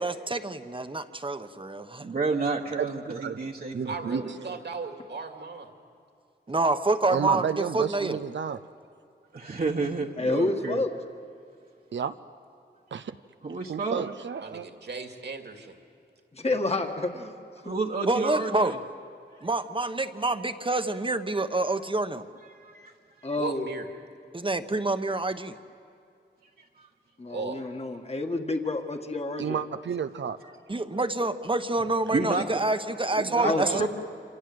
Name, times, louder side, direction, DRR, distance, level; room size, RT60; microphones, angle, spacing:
voice 1, 0.0-2.0 6.5-8.2 18.1-18.7 19.4-22.2 24.3-25.5 30.7-33.9, right 2 dB, 30° right, 8 dB, 1.1 m, -27 dB
voice 2, 2.0-4.5 9.3-10.8 13.4-14.0 17.6-18.8 22.5-22.9 23.2-23.3 26.8-26.9 32.1-32.4 33.2-33.9, right 3 dB, 50° right, -1 dB, 1.5 m, -30 dB
voice 3, 2.8-3.4 3.7-4.2 7.1-8.6 11.9-12.1 12.9-13.1 13.7-14.7 16.5-16.6 29.4-30.4 30.8-31.0 33.0-33.4, right 7 dB, 90° right, 10 dB, 0.7 m, -32 dB
voice 4, 3.8-5.7 14.4-15.8 23.4-23.9 27.3-27.6, right 4 dB, 70° right, 4 dB, 2.5 m, -36 dB
voice 5, 10.2-10.9 16.3-17.3 23.2-23.7 27.2-29.6 33.4-33.9, left 2 dB, 35° left, 4 dB, 1.8 m, -29 dB
27.5 x 26.5 x 7.9 m, 2.5 s
wide cardioid pair, 90°, 18 cm